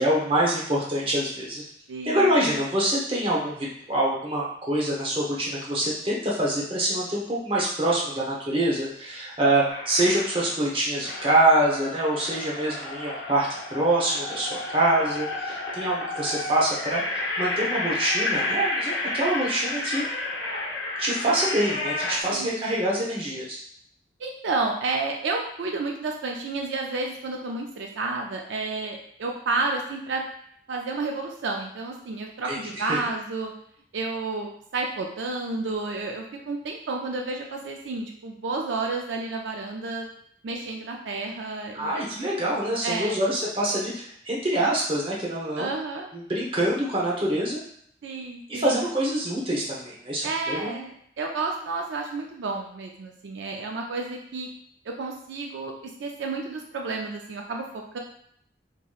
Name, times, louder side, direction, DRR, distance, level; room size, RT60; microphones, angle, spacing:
voice 1, 0.0-1.6 2.0-20.0 21.0-23.6 32.5-33.0 41.7-45.7 46.1-47.6 48.5-50.8, right 1 dB, 30° right, -4 dB, 0.8 m, -25 dB
voice 2, 1.9-2.6 22.2-22.7 24.2-30.2 30.7-33.5 33.9-40.1 40.4-42.1 42.8-43.2 45.6-46.1 48.0-48.8 50.2-54.5 55.0-55.7 56.0-58.0, right 3 dB, 75° right, 1 dB, 0.4 m, -31 dB
sound 1, 9.7-10.6 11.0-22.2, left 2 dB, 85° left, 0.8 m, -31 dB
4.6 x 2.9 x 2.4 m, 0.67 s
head